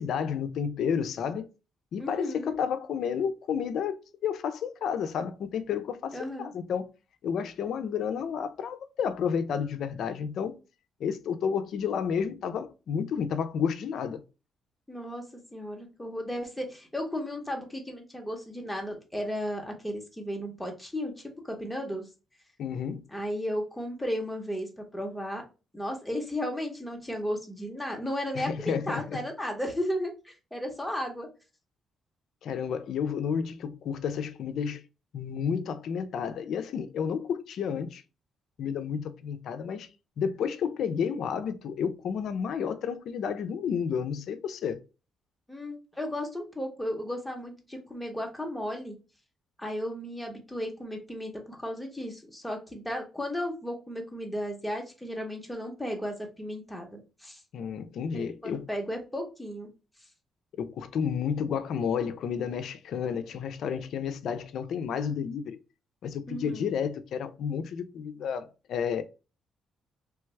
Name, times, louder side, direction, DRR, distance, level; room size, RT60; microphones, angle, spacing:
voice 1, 0.0-1.5 1.9-6.8 7.2-10.6 11.0-14.2 22.6-23.0 28.3-29.2 32.4-34.8 35.1-38.0 38.6-39.9 40.2-44.8 57.5-58.7 60.6-65.6 66.0-69.0, left 7 dB, 70° left, 0.4 m, -31 dB
voice 2, 2.0-2.5 6.1-6.5 14.9-15.2 15.5-22.1 23.1-25.4 25.7-31.3 45.5-49.0 49.6-57.4 58.1-59.7 66.3-66.7, equal, 5° left, 1.1 m, -34 dB
3.2 x 2.3 x 3.1 m
cardioid pair, 90°, 0 cm